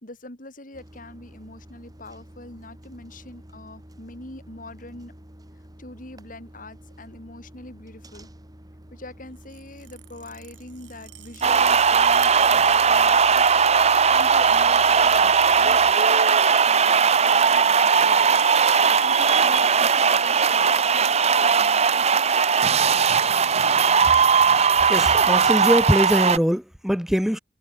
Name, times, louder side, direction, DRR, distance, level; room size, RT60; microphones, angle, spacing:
voice 1, 0.0-5.2 5.8-8.3 8.9-13.5 13.7-21.8, left 2 dB, 50° left, 5.0 m, -43 dB
sound 1, 0.7-15.9, equal, 20° right, 3.0 m, -48 dB
sound 2, 9.3-15.2 15.6-16.2 16.9-17.4 18.5-18.7 19.7-19.9 20.2-20.3 20.6-20.7 21.0-21.5 22.1-22.2 23.1-23.2, right 13 dB, 80° right, 4.1 m, -50 dB
sound 3, 11.4-26.4, right 6 dB, 35° right, 0.8 m, -18 dB
voice 2, 24.9-27.4, equal, ahead, 0.8 m, -22 dB
head